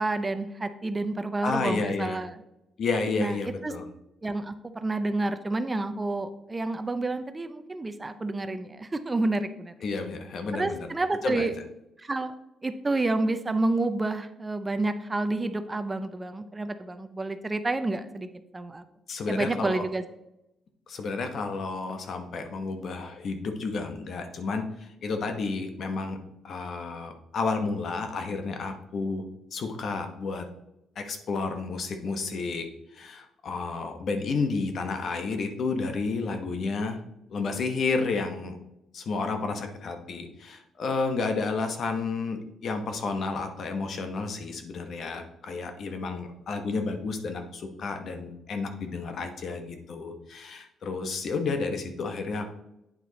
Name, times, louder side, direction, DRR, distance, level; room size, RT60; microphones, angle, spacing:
voice 1, 0.0-2.4 3.2-3.4 3.6-3.7 4.2-9.7 10.5-11.5 12.0-12.3 12.6-18.8 19.3-20.0, right 2 dB, 20° right, 10 dB, 0.6 m, -29 dB
voice 2, 1.4-2.2 2.8-3.8 9.8-10.9 11.2-11.5 19.1-19.8 20.9-26.2 26.4-29.2 29.5-30.4 31.0-32.7 32.9-37.0 37.3-38.6 38.9-52.5, left 4 dB, 60° left, 6 dB, 1.1 m, -31 dB
8.9 x 4.6 x 4.0 m, 0.87 s
cardioid pair, 90°, 0 cm